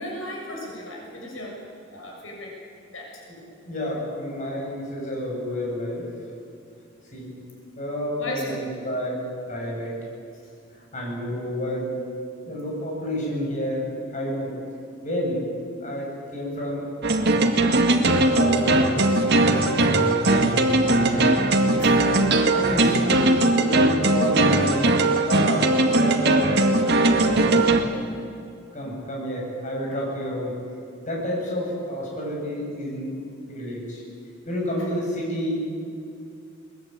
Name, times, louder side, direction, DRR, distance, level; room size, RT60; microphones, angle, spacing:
voice 1, 0.0-1.6 1.9-2.6 2.9-3.2 8.2-8.6 18.1-18.3 21.8-22.0 29.8-30.0 34.8-34.9, left 1 dB, 85° left, -1 dB, 6.8 m, -37 dB
voice 2, 3.3-6.1 7.1-7.3 7.8-10.0 10.9-11.9 12.4-14.6 15.0-15.4 15.8-16.9 17.5-21.4 22.5-24.9 25.3-27.8 28.7-30.6 31.0-33.2 33.5-34.0 34.5-35.6, equal, 40° left, -2 dB, 7.6 m, -30 dB
sound 1, 17.0-27.8, right 2 dB, 60° right, 2.0 m, -19 dB
23.0 x 21.0 x 9.1 m, 2.5 s
head